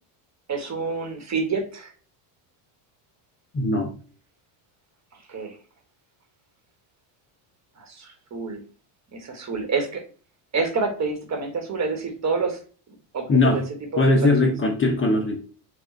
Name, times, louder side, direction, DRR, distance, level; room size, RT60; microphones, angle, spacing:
voice 1, 0.5-1.9 5.3-5.6 7.8-8.6 9.1-10.0 10.5-12.6 13.1-13.6 13.9-14.5, right 4 dB, 35° right, 1.3 m, -28 dB
voice 2, 3.5-3.9 13.3-13.6 14.0-15.4, left 2 dB, 25° left, 0.8 m, -20 dB
4.8 x 2.5 x 4.4 m
cardioid pair, 115°, 49 cm